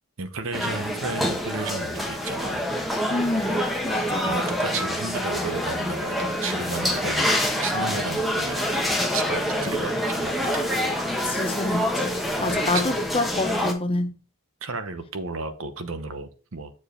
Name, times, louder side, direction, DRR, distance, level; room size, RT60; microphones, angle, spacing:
voice 1, 0.2-2.7 4.2-10.3 12.4-12.8 14.6-16.7, right 3 dB, 65° right, 0.8 m, -33 dB
sound 1, 0.5-13.7, equal, ahead, 0.9 m, -26 dB
voice 2, 3.1-4.3 11.1-14.1, left 2 dB, 25° left, 0.6 m, -27 dB
7.2 x 4.6 x 4.4 m
head